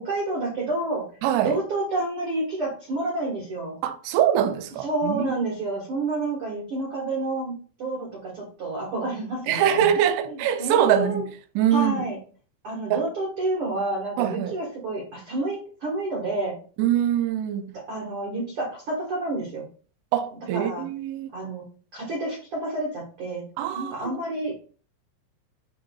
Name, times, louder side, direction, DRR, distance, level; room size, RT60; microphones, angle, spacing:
voice 1, 0.0-1.0 1.4-3.7 4.8-11.2 11.7-12.2 12.6-16.6 17.7-19.7 20.5-20.9 21.3-21.6 21.9-23.4 23.7-24.5, right 2 dB, 55° right, 1.6 m, -29 dB
voice 2, 1.2-1.6 3.8-5.3 9.5-11.2 11.6-12.0 12.9-13.1 14.2-14.5 16.8-17.7 20.1-21.3 23.6-24.2, right 10 dB, 80° right, 2.7 m, -23 dB
11.0 x 3.8 x 2.3 m
omnidirectional pair, 5.0 m